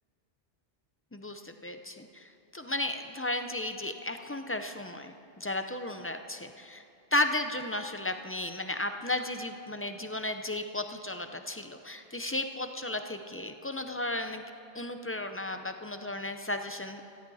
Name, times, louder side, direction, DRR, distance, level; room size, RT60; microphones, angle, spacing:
voice 1, 1.1-6.8 7.1-14.4 14.7-17.0, left 1 dB, 15° left, 7 dB, 0.5 m, -34 dB
17.0 x 15.5 x 4.2 m, 2.8 s
omnidirectional pair, 1.1 m